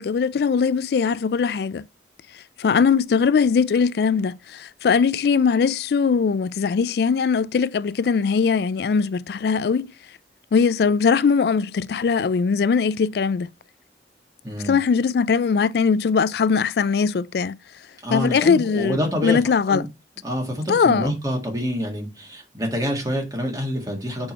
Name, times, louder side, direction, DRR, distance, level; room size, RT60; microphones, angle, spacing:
voice 1, 0.0-1.8 2.6-9.9 10.5-13.5 14.6-17.6 18.1-19.9 20.7-21.1, left 5 dB, 60° left, 0.3 m, -20 dB
voice 2, 14.4-14.8 18.0-19.4 19.7-19.8 20.2-24.3, equal, 20° right, 1.8 m, -27 dB
5.3 x 4.6 x 5.3 m
head